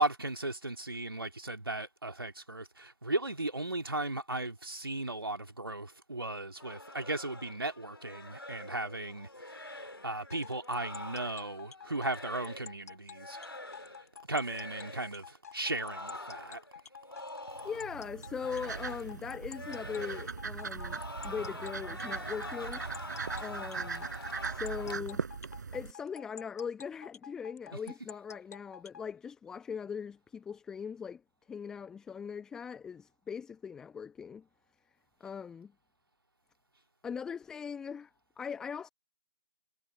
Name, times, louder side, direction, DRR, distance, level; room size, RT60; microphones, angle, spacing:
voice 1, 0.0-13.4 14.3-16.6, right 2 dB, 80° right, 2.5 m, -36 dB
sound 1, 6.6-12.8 13.1-14.1 14.4-15.2 15.6-18.0 18.2-19.2 19.5-20.5 20.7-25.0, left 2 dB, 80° left, 2.7 m, -46 dB
sound 2, 10.3-29.0, left 7 dB, 45° left, 1.9 m, -49 dB
sound 3, 17.5-25.9, right 5 dB, 50° right, 5.5 m, -40 dB
voice 2, 17.6-22.8 23.4-24.1 24.5-25.2 25.7-31.2 31.5-34.4 35.2-35.7 37.0-38.9, left 6 dB, 5° left, 1.1 m, -40 dB
figure-of-eight pair, 145°, 12 cm